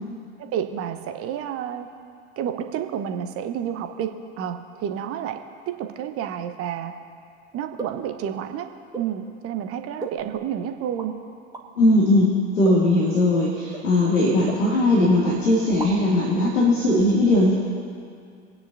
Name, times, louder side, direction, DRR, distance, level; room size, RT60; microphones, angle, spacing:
voice 1, 0.4-1.9 2.4-5.4 5.7-6.9 7.5-8.7 9.0-11.2, right 9 dB, 35° right, 7 dB, 1.1 m, -30 dB
sound 1, 7.8-8.1 8.9-9.1 10.0-10.5 10.9-11.1 11.5-11.7 12.6-12.9 13.7-13.9 14.5-15.0 15.3-15.4 15.7-16.2, right 4 dB, 10° right, 1.6 m, -36 dB
voice 2, 11.8-12.3 12.5-17.5, left 1 dB, 70° left, -4 dB, 2.6 m, -19 dB
25.5 x 9.5 x 2.8 m, 2.3 s
figure-of-eight pair, 80°, 39 cm